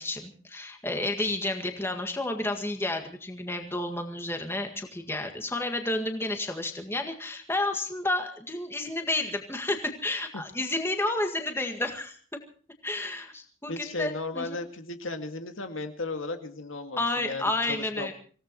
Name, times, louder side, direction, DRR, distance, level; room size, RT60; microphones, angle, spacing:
voice 1, 0.0-12.2 12.8-14.6 17.0-18.1, left 2 dB, 10° left, 4 dB, 1.8 m, -31 dB
voice 2, 13.7-18.1, left 3 dB, 90° left, 6 dB, 2.0 m, -35 dB
26.0 x 17.0 x 3.0 m, 0.42 s
head